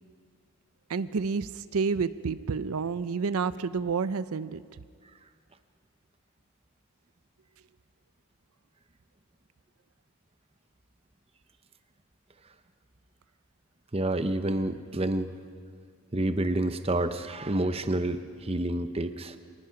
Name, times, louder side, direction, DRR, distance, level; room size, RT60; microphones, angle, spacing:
voice 1, 0.9-4.6, right 5 dB, 80° right, 15 dB, 0.5 m, -29 dB
voice 2, 13.9-15.3 16.1-19.4, right 1 dB, 25° right, 10 dB, 0.8 m, -28 dB
25.0 x 19.5 x 5.9 m, 2.1 s
head